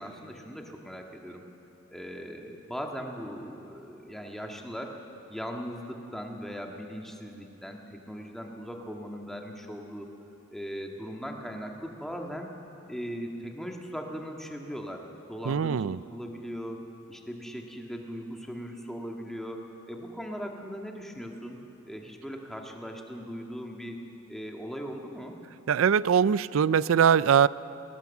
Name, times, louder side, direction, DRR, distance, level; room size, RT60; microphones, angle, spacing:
voice 1, 0.0-1.4 1.9-5.0 5.3-10.1 10.5-12.5 12.9-16.8 17.1-21.6 21.8-24.0 24.3-25.4, equal, ahead, 1 dB, 1.7 m, -39 dB
voice 2, 15.5-16.0 25.7-27.5, right 7 dB, 90° right, 19 dB, 0.4 m, -22 dB
21.0 x 18.0 x 7.2 m, 2.9 s
head